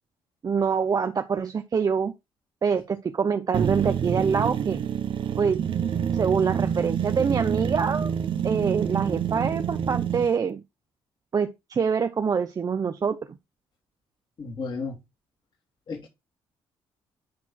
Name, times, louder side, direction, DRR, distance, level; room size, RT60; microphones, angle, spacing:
voice 1, 0.4-2.1 2.6-4.8 5.4-5.6 6.1-8.1 8.4-10.6 11.3-13.4, right 6 dB, 40° right, 0.7 m, -25 dB
sound 1, 3.5-10.3, right 8 dB, 60° right, 1.0 m, -27 dB
voice 2, 14.4-15.0 15.9-16.1, left 4 dB, 50° left, 3.3 m, -33 dB
10.5 x 4.4 x 4.2 m
cardioid pair, 90°, 10 cm